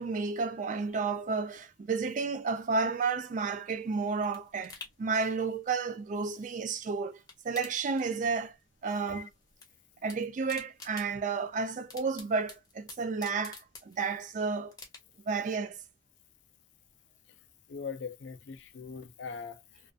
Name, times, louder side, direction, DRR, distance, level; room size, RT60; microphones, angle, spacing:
voice 1, 0.0-7.2 7.4-8.5 8.8-9.3 10.0-14.8 15.3-15.8, right 4 dB, 40° right, 0.3 m, -32 dB
sound 1, 3.5-6.8 7.1-8.6 8.9-9.7 9.9-14.3 14.7-15.3 15.7-15.8, left 4 dB, 20° left, 0.7 m, -51 dB
voice 2, 17.7-19.9, left 5 dB, 70° left, 0.4 m, -41 dB
2.4 x 2.4 x 2.4 m
head